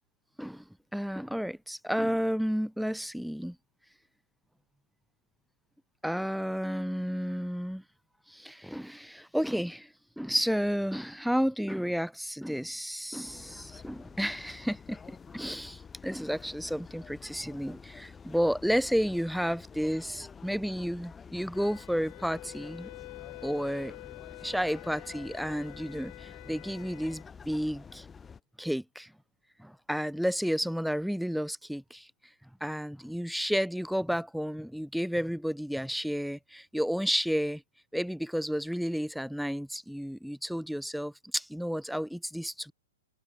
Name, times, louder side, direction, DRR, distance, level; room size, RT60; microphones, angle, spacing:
voice 1, 0.9-3.6 6.0-7.8 8.3-22.9 23.4-24.0 24.4-28.1 28.6-29.1 29.6-32.1 32.6-37.6 37.9-42.7, equal, ahead, 1.4 m, -32 dB
sound 1, 13.2-28.4, left 6 dB, 15° left, 1.7 m, -49 dB
Wind instrument woodwind instrument, 21.5-27.3, left 40 dB or more, 40° left, 2.6 m, -48 dB
hypercardioid pair, 110°, 0 cm